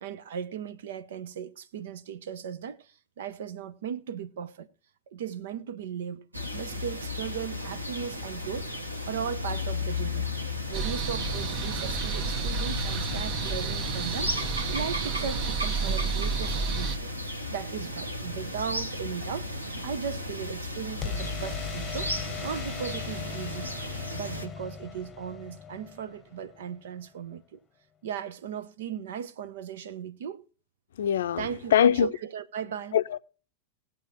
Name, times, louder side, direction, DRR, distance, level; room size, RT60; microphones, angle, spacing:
voice 1, 0.0-2.9 3.2-4.7 5.1-6.3 6.5-8.7 9.1-10.3 10.7-14.4 14.7-17.1 17.5-19.5 19.8-22.2 22.4-23.7 24.1-27.6 28.0-30.4 31.4-33.0, right 8 dB, 60° right, 0.9 m, -37 dB
sound 1, 6.3-24.5, left 2 dB, 85° right, 1.8 m, -35 dB
sound 2, 10.7-17.0, right 4 dB, 40° right, 1.1 m, -31 dB
sound 3, 12.9-14.9 21.0-26.8, left 6 dB, 20° left, 1.0 m, -40 dB
voice 2, 31.0-32.1 32.9-33.2, left 9 dB, 60° left, 0.6 m, -23 dB
20.0 x 7.8 x 2.9 m
figure-of-eight pair, 90°, 0 cm